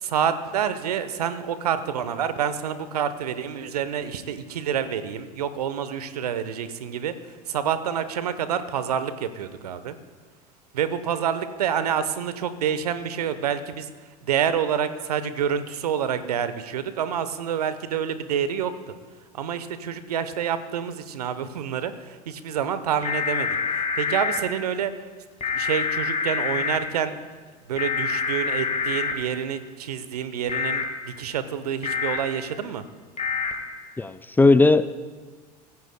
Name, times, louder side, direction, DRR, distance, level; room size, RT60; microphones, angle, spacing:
voice 1, 0.0-10.0 10.7-13.9 14.2-18.9 19.3-24.9 25.5-27.2 27.7-32.8, right 8 dB, 75° right, 13 dB, 0.9 m, -28 dB
sound 1, 23.0-24.4 25.4-26.8 27.8-29.1 30.5-30.8 31.8-32.2 33.2-33.5, left 5 dB, 35° left, 1.7 m, -26 dB
voice 2, 34.0-34.9, left 3 dB, 10° left, 13 dB, 0.4 m, -17 dB
25.0 x 15.5 x 2.2 m, 1.4 s
figure-of-eight pair, 75°, 20 cm